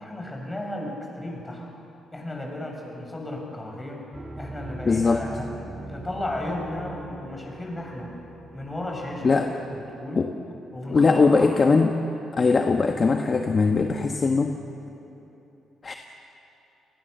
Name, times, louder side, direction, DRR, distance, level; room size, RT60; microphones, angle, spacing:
voice 1, 0.0-1.7 2.1-4.0 4.4-5.5 5.9-8.1 8.5-10.3 10.7-11.6, left 1 dB, 15° left, 0 dB, 7.1 m, -34 dB
sound 1, 4.1-10.0, right 2 dB, 25° right, 1.7 m, -41 dB
voice 2, 4.8-5.2 9.2-9.5 10.2-10.3 10.9-12.0 12.3-14.5 15.8-15.9, left 4 dB, 35° left, 4 dB, 1.3 m, -20 dB
29.5 x 20.5 x 6.9 m, 3.0 s
cardioid pair, 90°, 0 cm